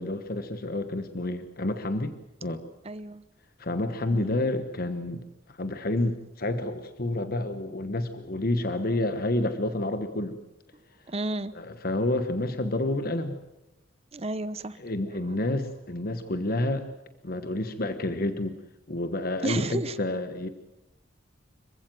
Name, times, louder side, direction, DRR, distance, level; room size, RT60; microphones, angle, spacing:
voice 1, 0.0-2.1 2.4-2.6 3.6-5.2 5.5-10.4 11.5-13.4 14.8-16.9 17.2-18.6 18.9-20.5, left 1 dB, 50° left, 9 dB, 1.2 m, -29 dB
voice 2, 2.8-3.2 4.1-4.3 11.1-11.6 14.1-14.8 19.4-20.0, right 2 dB, 30° right, 15 dB, 0.9 m, -32 dB
26.0 x 15.5 x 9.2 m, 0.97 s
head